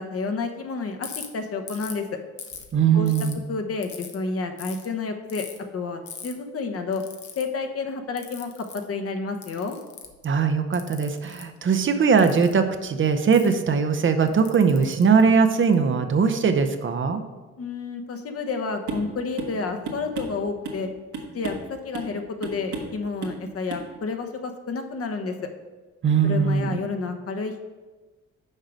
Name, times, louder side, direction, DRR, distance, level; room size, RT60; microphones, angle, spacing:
voice 1, 0.0-2.2 2.9-3.1 3.5-5.4 5.7-7.0 7.4-9.8 17.6-20.9 21.3-25.5 26.2-27.7, left 4 dB, 50° left, 6 dB, 1.1 m, -30 dB
Ratchet pawl, 1.0-1.3 1.7-2.0 2.4-3.3 3.8-4.2 4.6-4.9 5.3-5.6 6.1-6.3 6.9-7.4 8.2-8.8 9.4-10.2 10.7-11.4 12.2-12.5 13.3-13.5 14.3-15.7, left 7 dB, 75° left, 1.1 m, -40 dB
voice 2, 2.7-3.4 10.2-17.2 26.0-26.8, right 5 dB, 40° right, 7 dB, 0.7 m, -20 dB
sound 1, 18.9-19.1 19.4-19.6 19.9-20.8 21.1-21.7 21.9-22.2 22.4-23.0 23.2-23.4 23.7-23.9, right 4 dB, 80° right, 1.5 m, -33 dB
6.6 x 4.8 x 6.4 m, 1.2 s
cardioid pair, 90°, 30 cm